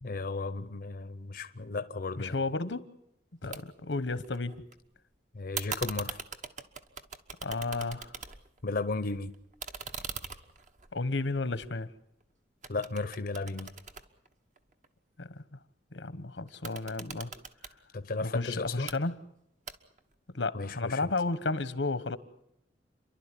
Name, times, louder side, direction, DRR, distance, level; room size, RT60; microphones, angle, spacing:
voice 1, 0.0-2.4 3.4-3.6 5.3-6.2 8.6-9.3 12.7-13.7 17.9-18.9 20.5-21.1, left 3 dB, 55° left, 0.8 m, -34 dB
voice 2, 2.2-2.9 3.4-4.6 7.4-8.1 10.9-11.9 15.2-15.6 15.9-17.3 18.2-19.2 20.3-22.2, left 3 dB, 90° left, 1.2 m, -32 dB
sound 1, 3.5-3.6 3.9-4.7 5.5-8.6 9.0-12.2 12.6-14.9 16.5-17.8 18.6-19.0 19.7-20.1, right 5 dB, 45° right, 1.3 m, -41 dB
30.0 x 11.5 x 9.9 m
head